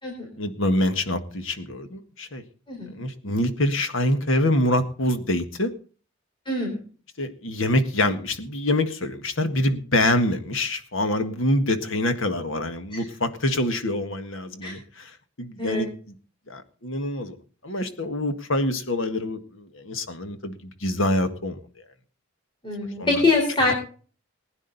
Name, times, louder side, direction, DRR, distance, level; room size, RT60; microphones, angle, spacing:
voice 1, 0.4-2.4 2.9-5.7 7.2-16.0 16.5-17.3 17.6-21.6 23.0-23.3 23.6-23.7, left 1 dB, 60° left, 9 dB, 1.7 m, -25 dB
voice 2, 6.5-6.8 12.9-13.0 14.6-14.7 15.6-15.8 22.6-23.7, left 3 dB, 25° left, -1 dB, 4.3 m, -24 dB
20.0 x 9.9 x 4.1 m, 0.39 s
head